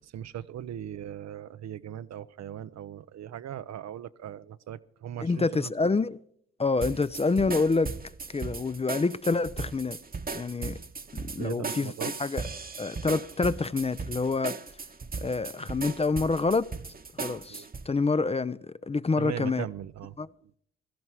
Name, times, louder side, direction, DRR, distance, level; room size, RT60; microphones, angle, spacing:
voice 1, 0.1-5.9 6.9-7.0 11.4-12.1 17.5-17.7 19.2-20.5, right 10 dB, 65° right, 0.7 m, -39 dB
voice 2, 5.2-6.2 6.6-7.9 8.3-10.0 10.3-10.8 11.1-11.9 12.2-12.4 12.8-14.6 15.2-16.7 17.1-19.7 20.2-20.3, left 3 dB, 20° left, 0.5 m, -27 dB
sound 1, 6.8-17.9, right 4 dB, 30° right, 1.1 m, -37 dB
16.5 x 13.5 x 4.7 m
supercardioid pair, 50°, 30 cm